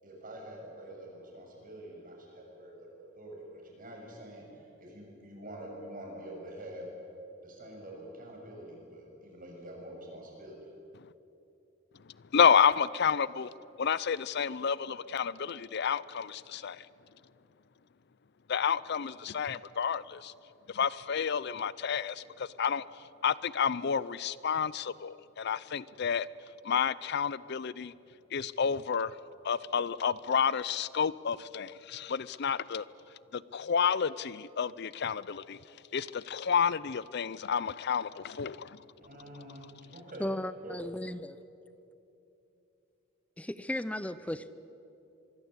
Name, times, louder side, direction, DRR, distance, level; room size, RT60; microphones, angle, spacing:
voice 1, 0.0-6.9 7.4-10.6 39.0-40.3 40.6-40.8 41.1-41.2, right 1 dB, 45° right, 0 dB, 7.0 m, -46 dB
voice 2, 12.3-13.5 13.8-16.9 18.5-20.3 20.7-22.8 23.2-26.3 26.6-27.9 28.3-29.2 29.4-32.8 33.3-35.6 35.9-38.8, left 7 dB, 55° left, 19 dB, 0.5 m, -30 dB
voice 3, 40.2-41.4 43.4-44.5, left 1 dB, 5° left, 14 dB, 0.5 m, -35 dB
25.0 x 23.5 x 8.2 m, 2.8 s
head